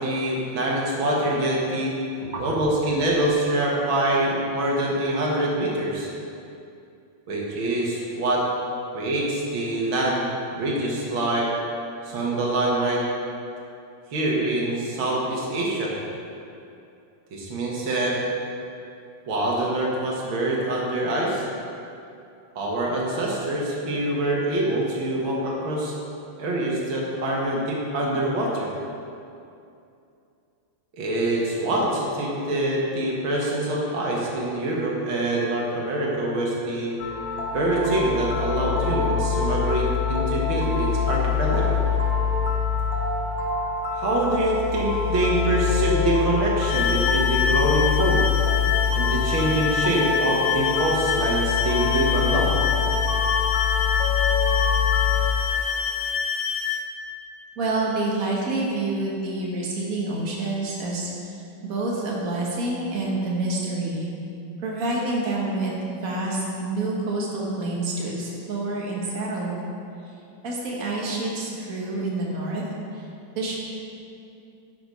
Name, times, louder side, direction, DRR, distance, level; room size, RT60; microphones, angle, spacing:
voice 1, 0.0-1.9 2.4-6.1 7.3-8.4 8.9-10.3 10.5-11.5 12.0-13.0 14.1-15.9 17.3-18.2 19.3-21.5 22.6-25.9 26.4-28.7 30.9-36.9 37.5-41.8 43.9-48.2 48.9-52.5, right 1 dB, 90° right, -3 dB, 2.3 m, -25 dB
voice 2, 2.2-2.6 57.6-64.1 64.6-69.6 70.1-70.2 70.4-72.6 72.9-73.0 73.4-73.6, right 2 dB, 45° right, -4 dB, 1.9 m, -28 dB
sound 1, 37.0-55.3, left 6 dB, 90° left, 1.9 m, -24 dB
sound 2, 46.7-56.8, left 7 dB, 70° left, 1.3 m, -26 dB
11.0 x 6.1 x 5.4 m, 2.6 s
omnidirectional pair, 2.1 m